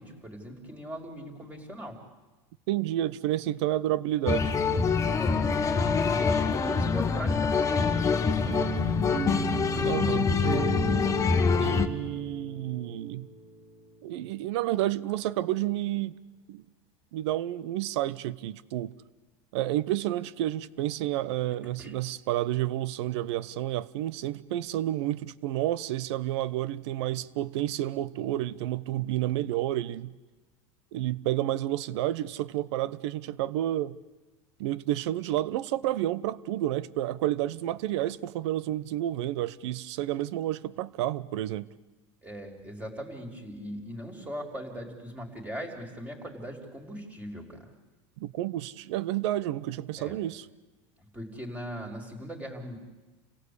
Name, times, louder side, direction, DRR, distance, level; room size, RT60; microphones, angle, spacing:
voice 1, 0.0-2.0 5.2-8.7 21.8-21.9 42.2-47.6 50.0-50.2 51.1-52.8, equal, 10° right, 4.8 m, -40 dB
voice 2, 2.7-4.6 9.8-10.3 11.6-13.3 14.0-16.2 16.5-16.6 17.1-18.9 19.5-30.1 30.9-34.0 34.6-41.7 48.2-50.5, right 14 dB, 75° right, 0.9 m, -30 dB
sound 1, 4.3-11.9, left 5 dB, 20° left, 1.4 m, -25 dB
sound 2, 8.5-13.6, right 2 dB, 30° right, 3.2 m, -34 dB
28.5 x 17.0 x 8.5 m
supercardioid pair, 125°, 14 cm